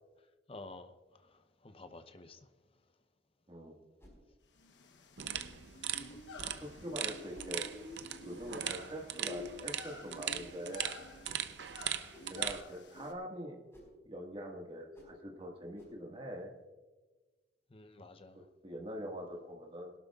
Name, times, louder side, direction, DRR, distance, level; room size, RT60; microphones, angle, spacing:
voice 1, 0.5-2.5 6.0-6.6 17.7-18.5, left 2 dB, 30° left, 0.7 m, -52 dB
sound 1, 4.0-4.2 5.3-5.6 6.4-6.6 7.3-7.6 8.4-8.6 9.3-9.6 10.3-10.6 11.2-11.4 12.1-12.4 12.9-13.2 13.7-14.0 14.9-15.2 15.8-16.0, equal, 15° left, 4.7 m, -55 dB
sound 2, 4.6-13.1, left 3 dB, 70° left, 1.1 m, -50 dB
sound 3, 5.2-12.6, right 10 dB, 65° right, 0.6 m, -40 dB
voice 2, 6.5-7.6 8.2-10.9 12.3-13.6 14.1-16.5 18.6-19.9, equal, 30° right, 1.7 m, -43 dB
21.5 x 12.0 x 2.4 m
head